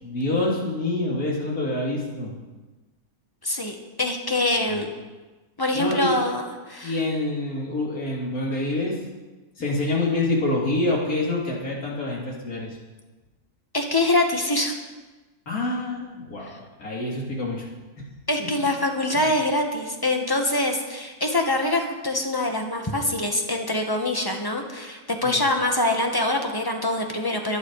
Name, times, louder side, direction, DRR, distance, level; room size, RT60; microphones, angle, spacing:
voice 1, 0.0-2.3 4.7-4.8 5.7-6.3 6.8-9.0 9.6-12.8 15.5-17.7 18.0-18.1 18.4-18.5 19.1-19.3 25.2-25.4, left 2 dB, 65° left, -3 dB, 3.4 m, -26 dB
voice 2, 3.4-4.9 5.6-6.9 13.7-14.7 18.3-27.6, left 1 dB, 15° left, 3 dB, 1.5 m, -24 dB
22.5 x 9.4 x 4.9 m, 1.2 s
omnidirectional pair, 1.6 m